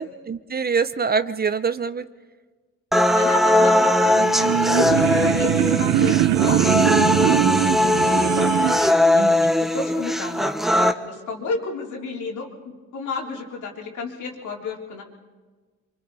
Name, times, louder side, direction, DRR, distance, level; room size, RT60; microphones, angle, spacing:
voice 1, 0.0-2.0 9.1-9.5, right 5 dB, 30° right, 12 dB, 0.8 m, -25 dB
sound 1, 2.9-10.9, left 1 dB, ahead, 1.1 m, -20 dB
voice 2, 3.1-3.9 4.4-8.3 9.6-10.5 10.8-15.0, left 4 dB, 80° left, -1 dB, 3.6 m, -32 dB
sound 2, 4.0-8.9, right 14 dB, 80° right, 0.6 m, -21 dB
27.5 x 24.5 x 4.1 m, 1.3 s
cardioid pair, 90°, 30 cm